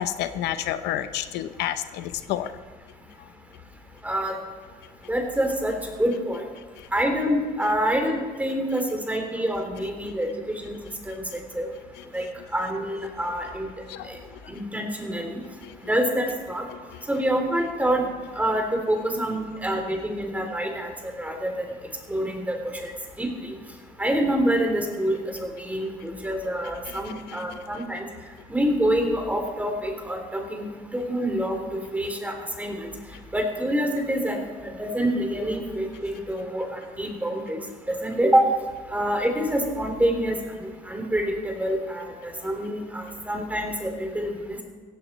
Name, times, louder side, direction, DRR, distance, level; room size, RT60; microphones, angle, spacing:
voice 1, 0.0-2.5 6.8-6.9 12.2-12.3 13.9-14.1 15.6-15.8 16.9-17.0 26.9-27.6, left 12 dB, 85° left, 11 dB, 0.8 m, -30 dB
voice 2, 4.0-4.3 5.1-6.5 6.9-10.7 11.0-11.1 11.5-11.7 12.1-12.2 12.5-13.7 14.1-14.2 14.5-15.4 15.9-16.6 17.1-18.0 18.4-21.6 22.1-22.9 23.2-23.3 24.0-28.0 28.5-32.9 33.3-37.6 37.9-38.4 38.9-44.6, right 1 dB, 10° right, 3 dB, 3.0 m, -26 dB
16.5 x 16.0 x 4.2 m, 1.5 s
cardioid pair, 110°, 17 cm